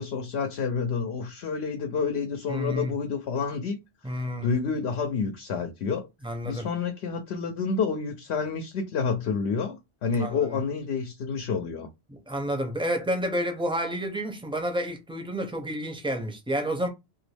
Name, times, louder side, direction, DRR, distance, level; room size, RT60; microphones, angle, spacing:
voice 1, 0.0-3.8 4.0-6.1 6.4-11.9, left 5 dB, 75° left, 0.9 m, -29 dB
voice 2, 2.5-2.9 4.0-4.5 6.2-6.7 10.1-10.6 12.1-16.9, equal, 5° right, 0.5 m, -30 dB
2.9 x 2.5 x 3.3 m
omnidirectional pair, 1.1 m